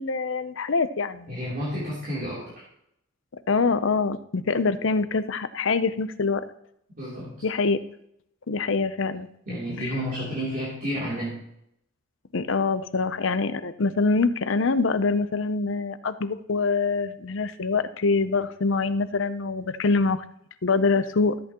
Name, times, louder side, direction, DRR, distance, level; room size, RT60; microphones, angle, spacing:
voice 1, 0.0-1.3 3.5-6.5 7.4-7.8 8.5-9.3 9.9-10.0 12.3-20.2 20.6-21.3, left 4 dB, 65° left, 12 dB, 0.6 m, -24 dB
voice 2, 1.3-2.6 7.0-7.3 9.5-11.4, equal, 45° right, -8 dB, 3.2 m, -31 dB
13.5 x 8.3 x 2.9 m, 0.75 s
head